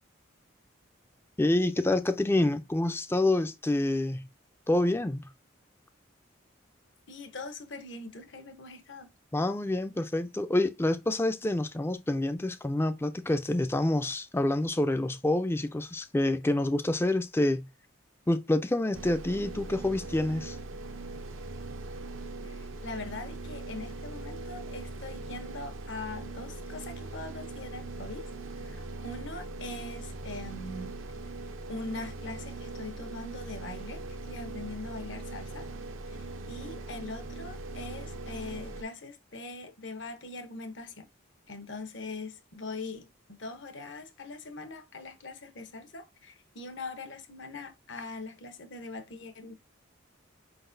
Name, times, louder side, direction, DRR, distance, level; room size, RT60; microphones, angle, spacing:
voice 1, 1.4-4.3 4.7-5.2 9.3-17.7 18.3-20.6, left 1 dB, 10° left, 0.4 m, -27 dB
voice 2, 7.1-9.1 22.4-28.3 28.6-31.0 31.7-35.7 36.1-36.2 36.5-41.1 41.5-49.5, left 3 dB, 65° left, 1.0 m, -42 dB
sound 1, 18.9-38.8, right 2 dB, 85° right, 0.7 m, -40 dB
5.1 x 3.9 x 2.6 m
head